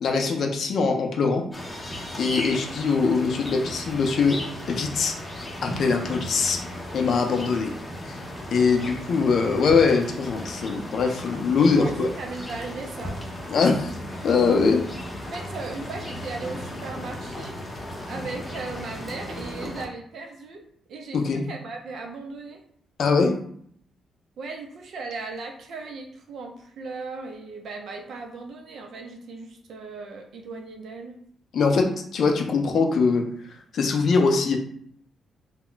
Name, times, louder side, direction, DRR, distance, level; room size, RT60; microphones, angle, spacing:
voice 1, 0.0-1.4 2.2-4.4 4.7-5.2 5.6-6.6 6.9-7.7 8.0-8.2 8.5-12.1 13.5-13.9 14.2-14.8 21.1-21.4 23.0-23.3 31.5-33.2 33.7-34.6, left 4 dB, 60° left, 4 dB, 0.5 m, -22 dB
sound 1, 1.5-19.9, left 1 dB, 20° left, 0.6 m, -36 dB
voice 2, 11.5-13.2 15.3-17.6 18.1-20.6 20.9-22.6 24.4-31.2, right 3 dB, 65° right, 3 dB, 0.5 m, -37 dB
2.3 x 2.1 x 3.8 m, 0.63 s
cardioid pair, 110°, 0 cm